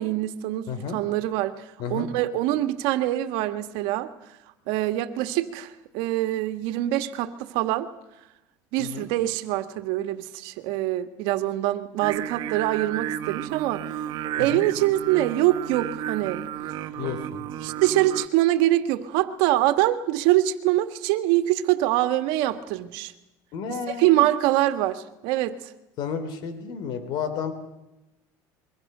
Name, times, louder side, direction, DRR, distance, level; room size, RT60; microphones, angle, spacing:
voice 1, 0.0-4.1 4.7-7.9 8.7-14.1 14.4-16.4 17.6-23.1 23.9-25.7, right 15 dB, 80° right, 9 dB, 1.7 m, -24 dB
voice 2, 0.7-1.0 1.8-2.1 8.8-9.1 14.4-14.7 17.0-17.4 23.5-24.2 26.0-27.5, left 6 dB, 60° left, 10 dB, 3.3 m, -32 dB
Singing, 12.0-18.3, right 11 dB, 55° right, 1.2 m, -33 dB
25.0 x 23.0 x 6.7 m, 0.95 s
cardioid pair, 120°, 8 cm